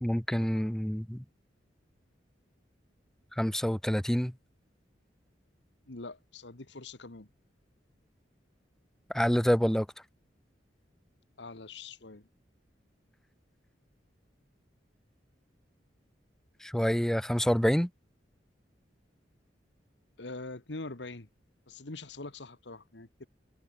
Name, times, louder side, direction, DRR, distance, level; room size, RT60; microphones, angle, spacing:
voice 1, 0.0-1.2 3.4-4.3 9.1-9.9 16.6-17.9, equal, 5° left, 0.4 m, -27 dB
voice 2, 5.9-7.3 11.4-12.3 20.2-21.3 21.7-23.3, left 3 dB, 75° left, 1.7 m, -43 dB
head